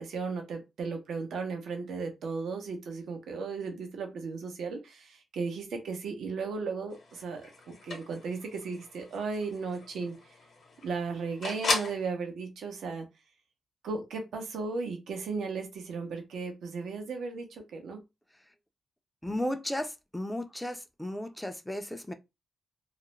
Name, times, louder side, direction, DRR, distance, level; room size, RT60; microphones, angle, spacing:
voice 1, 0.0-7.5 7.8-10.1 10.8-13.1 13.8-18.0, right 4 dB, 80° right, 0.7 m, -35 dB
sound 1, 6.9-12.1, left 3 dB, 60° left, 0.9 m, -37 dB
voice 2, 19.2-22.1, left 1 dB, 10° left, 0.5 m, -34 dB
2.4 x 2.0 x 3.0 m
cardioid pair, 65°, 0 cm